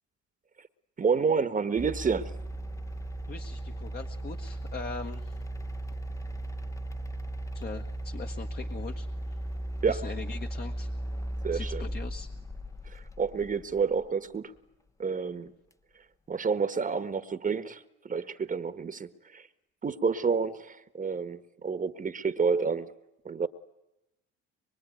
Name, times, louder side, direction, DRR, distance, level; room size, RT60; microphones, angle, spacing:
voice 1, 1.0-2.3 9.8-10.0 11.4-11.8 12.9-14.5 15.0-15.5 16.3-19.5 19.8-22.9 23.2-23.5, right 5 dB, 30° right, 1.4 m, -29 dB
sound 1, 1.8-14.1, right 1 dB, 10° left, 0.9 m, -36 dB
voice 2, 3.3-5.4 7.5-9.1 9.9-10.9 11.5-12.3, left 5 dB, 35° left, 1.5 m, -41 dB
24.5 x 23.5 x 9.4 m
supercardioid pair, 95°, 29 cm